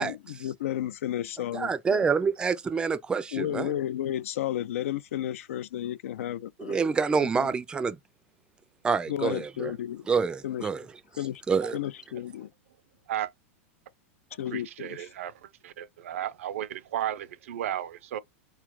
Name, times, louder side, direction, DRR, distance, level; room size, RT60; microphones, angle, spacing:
voice 1, 0.0-2.0 3.3-6.8 7.3-7.5 9.1-10.1 10.4-10.7 11.2-11.4 11.7-12.5 14.4-15.1, left 12 dB, 80° left, 0.4 m, -33 dB
voice 2, 1.5-3.7 6.6-8.0 8.8-9.7 10.1-10.8 11.5-11.8, right 5 dB, 10° right, 0.4 m, -27 dB
voice 3, 14.5-18.2, right 11 dB, 80° right, 0.5 m, -34 dB
4.2 x 2.3 x 3.1 m
supercardioid pair, 135°, 7 cm